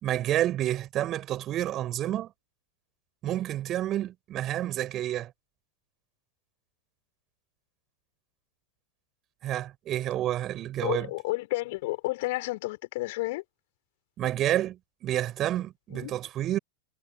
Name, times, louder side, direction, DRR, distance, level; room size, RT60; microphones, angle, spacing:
voice 1, 0.0-2.3 3.2-5.3 9.4-11.1 14.2-16.6, right 13 dB, 30° right, 5.5 m, -29 dB
voice 2, 10.8-13.4 15.9-16.1, left 21 dB, 50° left, 4.0 m, -31 dB
figure-of-eight pair, 90°, 0 cm